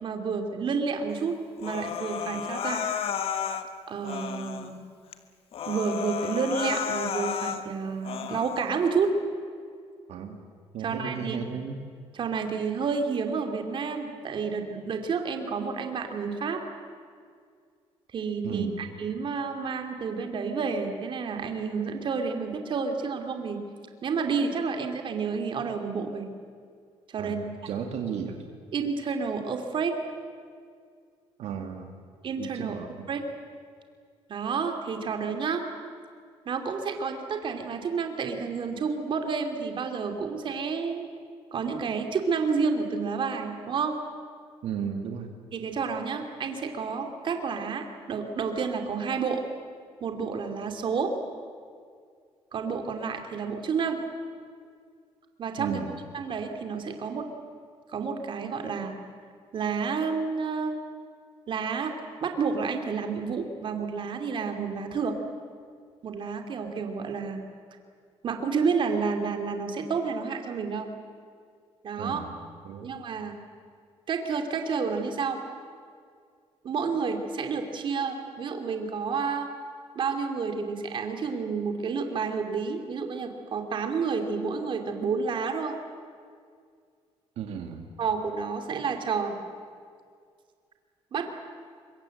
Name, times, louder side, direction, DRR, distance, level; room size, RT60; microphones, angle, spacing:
voice 1, 0.0-2.8 3.9-4.8 5.6-9.1 10.8-11.6 12.1-16.6 18.1-23.6 24.0-26.3 27.1-27.4 28.7-29.9 32.2-33.2 34.3-35.7 36.5-41.0 41.5-44.0 45.5-49.4 50.0-51.1 52.5-54.0 55.4-55.8 56.1-57.3 57.9-58.9 59.5-60.8 61.5-61.9 62.2-65.2 66.0-67.4 68.2-70.9 71.8-72.2 72.8-73.4 74.1-75.4 76.6-79.5 79.9-85.8 88.0-89.4 91.1-91.3, right 5 dB, 50° right, 5 dB, 2.6 m, -30 dB
Human voice, 1.6-3.7 4.0-4.7 5.1-5.2 5.5-7.6 8.0-8.6, left 8 dB, 60° left, 1.5 m, -32 dB
voice 2, 10.7-11.8 18.4-18.8 27.2-28.4 31.4-31.9 32.4-33.1 44.6-45.3 55.6-55.9 72.0-72.4 72.6-72.9 87.4-87.9, right 7 dB, 75° right, 4 dB, 2.2 m, -34 dB
25.0 x 22.5 x 7.8 m, 2.1 s
cardioid pair, 125°, 11 cm